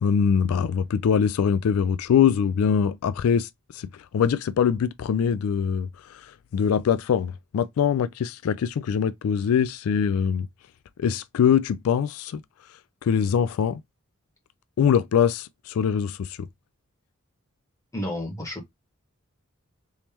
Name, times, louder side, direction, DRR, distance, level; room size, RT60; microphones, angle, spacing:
voice 1, 0.0-10.5 11.0-12.4 13.0-13.8 14.8-16.4, left 7 dB, 80° left, 0.3 m, -23 dB
voice 2, 17.9-18.7, left 1 dB, 15° left, 1.5 m, -31 dB
3.5 x 3.1 x 2.8 m
head